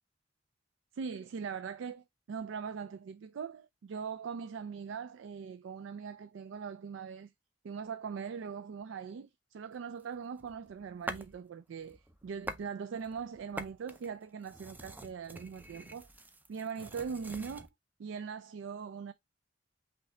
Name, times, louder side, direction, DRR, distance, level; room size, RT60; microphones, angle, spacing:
voice 1, 0.9-7.3 7.6-16.1 16.5-17.7 18.0-19.1, right 6 dB, 85° right, 0.3 m, -41 dB
sound 1, 10.0-11.4 11.8-12.7 13.0-17.7, right 1 dB, 10° right, 0.4 m, -45 dB
5.6 x 2.7 x 3.3 m
head